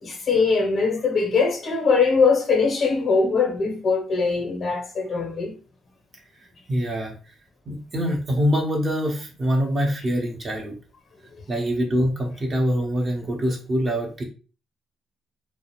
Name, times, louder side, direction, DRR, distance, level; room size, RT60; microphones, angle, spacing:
voice 1, 0.0-5.5, left 4 dB, 50° left, 0.7 m, -21 dB
voice 2, 6.7-7.1 7.7-10.7 11.5-14.2, equal, 35° right, 0.8 m, -24 dB
2.4 x 2.1 x 2.9 m
cardioid pair, 90°, 0 cm